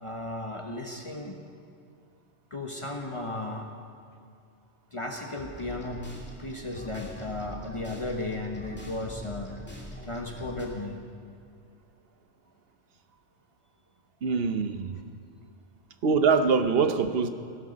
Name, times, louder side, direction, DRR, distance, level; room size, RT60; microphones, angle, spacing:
voice 1, 0.0-1.4 2.5-3.7 4.9-6.1 6.4-9.5 10.0-11.0, left 2 dB, 25° left, 2 dB, 1.1 m, -35 dB
sound 1, 5.4-10.7, equal, 10° left, 2.4 m, -43 dB
voice 2, 14.2-15.0 16.0-17.3, right 5 dB, 60° right, 9 dB, 1.0 m, -24 dB
18.5 x 12.0 x 5.2 m, 2.4 s
omnidirectional pair, 1.2 m